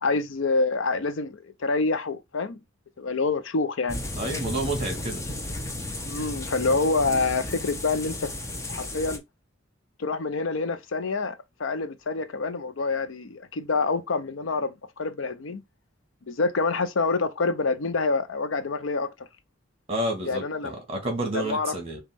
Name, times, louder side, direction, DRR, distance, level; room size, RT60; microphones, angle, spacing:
voice 1, 0.0-2.6 3.0-4.0 6.1-8.3 8.7-9.2 10.0-15.6 16.2-19.1 20.3-20.7 21.3-21.7, left 3 dB, 85° left, 0.6 m, -27 dB
sound 1, 3.9-9.2, left 1 dB, 15° left, 0.6 m, -34 dB
voice 2, 4.2-5.2 19.9-22.0, right 1 dB, 30° right, 1.5 m, -30 dB
5.1 x 2.3 x 3.4 m
head